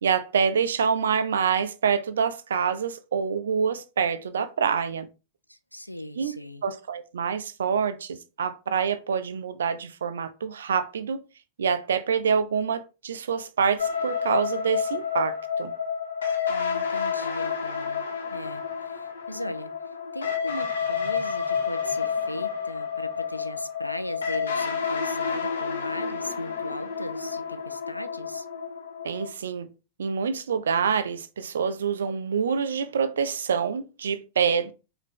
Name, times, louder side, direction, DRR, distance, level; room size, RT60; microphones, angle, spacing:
voice 1, 0.0-5.1 6.2-6.4 6.6-11.2 11.6-15.7 29.0-29.7 30.0-34.7, right 6 dB, 65° right, 0.5 m, -26 dB
voice 2, 5.5-6.6 16.5-18.0 18.3-19.7 20.1-28.5, left 1 dB, 90° left, 0.4 m, -38 dB
sound 1, 13.8-29.3, left 6 dB, 70° left, 1.0 m, -30 dB
4.8 x 2.7 x 3.6 m
figure-of-eight pair, 90°, 0 cm